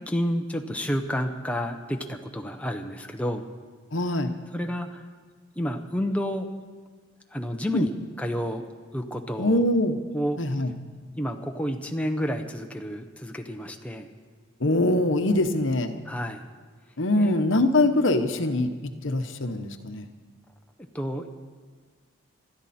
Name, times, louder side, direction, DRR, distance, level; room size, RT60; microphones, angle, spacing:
voice 1, 0.1-3.5 4.5-5.0 5.6-6.5 7.3-7.9 8.2-8.7 8.9-9.6 10.1-10.4 11.2-14.1 16.0-16.4 17.1-17.4 20.9-21.3, equal, 5° left, 3 dB, 0.8 m, -30 dB
voice 2, 3.9-4.3 7.7-7.9 9.4-10.0 10.4-10.7 14.6-16.0 17.0-20.1, left 1 dB, 65° left, 8 dB, 1.1 m, -23 dB
26.5 x 12.5 x 4.3 m, 1.5 s
head